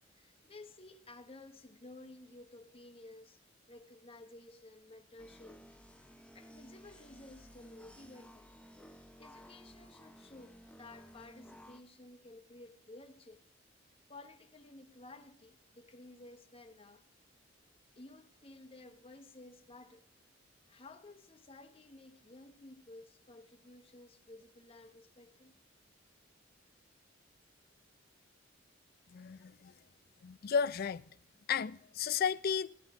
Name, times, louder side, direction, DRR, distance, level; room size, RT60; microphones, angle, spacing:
voice 1, 0.0-3.4 3.7-5.6 6.3-8.5 9.2-13.4 14.1-17.0 18.0-20.1 20.7-25.5, left 2 dB, 30° left, 0.9 m, -54 dB
sound 1, 5.2-11.8, equal, 5° left, 0.6 m, -56 dB
voice 2, 29.1-29.7 30.2-31.0 31.5-32.7, left 7 dB, 50° left, 0.4 m, -33 dB
16.5 x 11.5 x 3.6 m
head